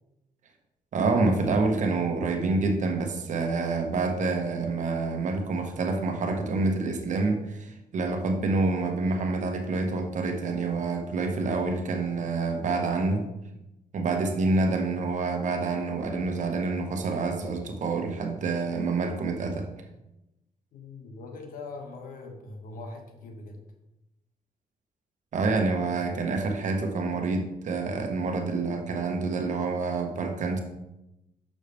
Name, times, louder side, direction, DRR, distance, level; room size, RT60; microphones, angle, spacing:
voice 1, 0.9-13.3 13.9-19.7 25.3-30.6, right 3 dB, 60° right, 4 dB, 1.1 m, -27 dB
voice 2, 20.7-23.6, left 3 dB, 75° left, 4 dB, 1.1 m, -42 dB
6.5 x 6.4 x 3.4 m, 0.94 s
cardioid pair, 95°, 14 cm